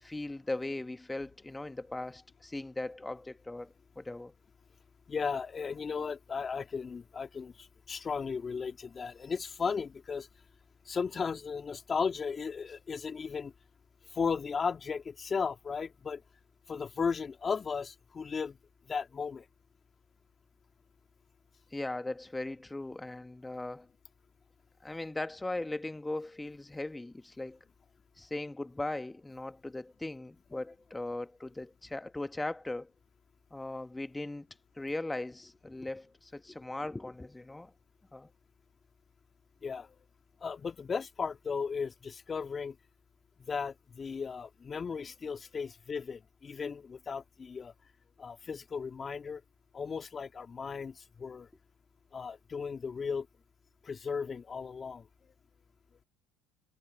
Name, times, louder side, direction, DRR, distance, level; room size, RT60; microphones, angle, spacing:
voice 1, 0.0-4.3 21.7-23.9 24.8-27.6 28.2-32.9 33.5-34.5 34.8-37.7 38.1-38.3, left 2 dB, 10° left, 1.4 m, -39 dB
voice 2, 5.1-10.3 10.9-13.5 14.1-16.2 16.7-18.6 18.9-19.5 39.6-40.0 40.4-42.8 43.5-47.7 48.2-49.4 49.7-51.5 52.1-53.3 53.8-55.1, left 5 dB, 30° left, 2.5 m, -35 dB
supercardioid pair, 85°, 0 cm